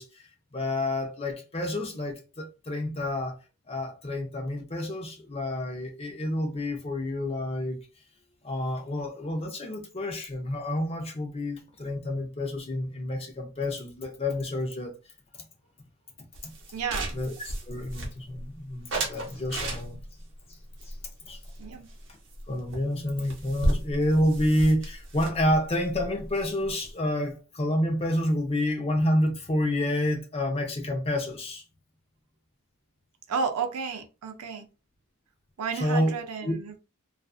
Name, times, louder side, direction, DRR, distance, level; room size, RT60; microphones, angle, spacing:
voice 1, 0.0-3.4 3.7-7.8 8.4-15.0 16.4-16.5 17.1-17.3 17.7-20.0 20.9-21.0 21.3-21.4 22.5-31.6 35.7-36.1 36.4-36.6, left 1 dB, 25° left, 0.5 m, -29 dB
sound 1, 16.3-18.4 18.9-20.2 20.8-22.0 22.3-22.4 22.7-22.8 23.0-26.9, right 1 dB, 55° right, 0.7 m, -33 dB
voice 2, 16.7-17.1 21.6-21.9 33.3-34.7 35.6-36.8, right 6 dB, 90° right, 0.5 m, -32 dB
2.5 x 2.4 x 2.3 m
head